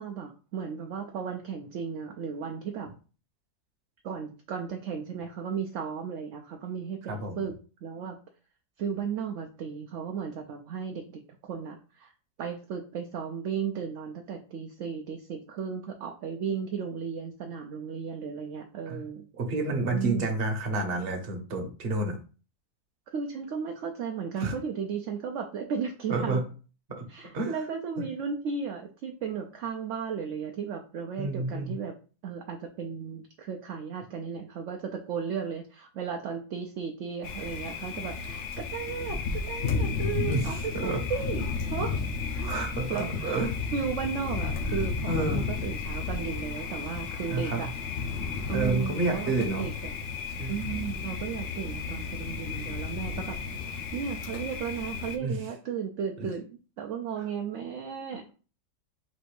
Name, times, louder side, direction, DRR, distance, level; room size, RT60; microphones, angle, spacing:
voice 1, 0.0-2.9 4.0-7.5 7.8-8.2 8.8-12.1 12.4-19.2 19.9-20.3 23.1-26.4 27.1-31.9 32.2-42.0 42.3-42.5 42.9-43.5 43.7-47.7 48.5-49.9 50.5-58.3, right 6 dB, 65° right, 3 dB, 0.8 m, -35 dB
voice 2, 7.1-7.5 18.9-19.0 19.4-22.1 24.4-24.5 26.1-26.4 27.0-27.1 27.3-27.5 31.2-31.7 40.3-41.0 41.8-41.9 42.4-43.5 45.1-45.5 47.3-47.6 48.5-49.7 50.4-50.6 55.2-55.4 56.2-56.3, right 2 dB, 45° right, 3 dB, 1.0 m, -30 dB
Thunder, 37.2-55.2, left 5 dB, 60° left, 0.8 m, -33 dB
4.2 x 2.6 x 4.7 m, 0.37 s
omnidirectional pair, 1.6 m